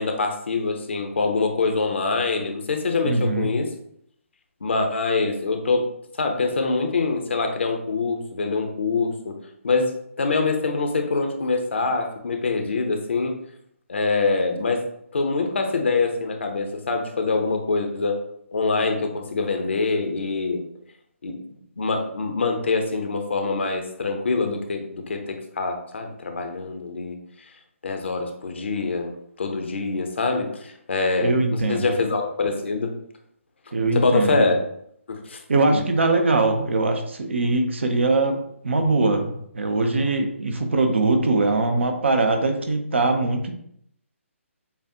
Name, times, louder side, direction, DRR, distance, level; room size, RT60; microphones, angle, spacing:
voice 1, 0.0-3.7 4.6-5.9 6.2-9.4 9.6-13.3 13.9-18.2 18.5-20.6 21.2-21.4 21.8-27.2 27.8-29.1 29.4-32.9 33.9-34.6 35.1-35.4 35.7-35.8, left 3 dB, 55° left, 4 dB, 0.8 m, -24 dB
voice 2, 3.0-3.5 31.2-31.9 33.7-34.5 35.5-38.4 38.6-43.5, right 3 dB, 55° right, 5 dB, 0.8 m, -22 dB
7.0 x 2.4 x 2.8 m, 0.71 s
figure-of-eight pair, 140°, 7 cm